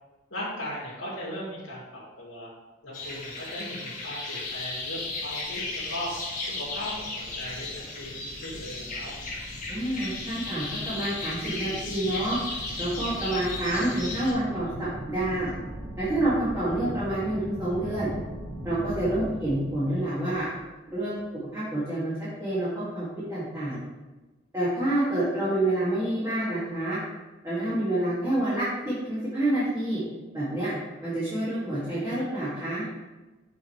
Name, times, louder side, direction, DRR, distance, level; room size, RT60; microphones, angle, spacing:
voice 1, 0.3-2.5 2.8-6.1 6.4-9.1, left 1 dB, 90° left, -7 dB, 2.1 m, -38 dB
sound 1, 2.9-14.3, left 3 dB, 45° left, 1.5 m, -35 dB
sound 2, 4.4-21.4, equal, 60° right, 1.7 m, -41 dB
voice 2, 9.7-12.4 12.8-15.5 16.0-18.1 18.6-20.5 20.9-21.2 21.5-22.1 22.4-23.8 24.5-27.0 27.4-30.0 30.3-30.7 31.0-32.8, right 1 dB, 15° right, -12 dB, 2.1 m, -28 dB
7.5 x 5.3 x 3.2 m, 1.2 s
head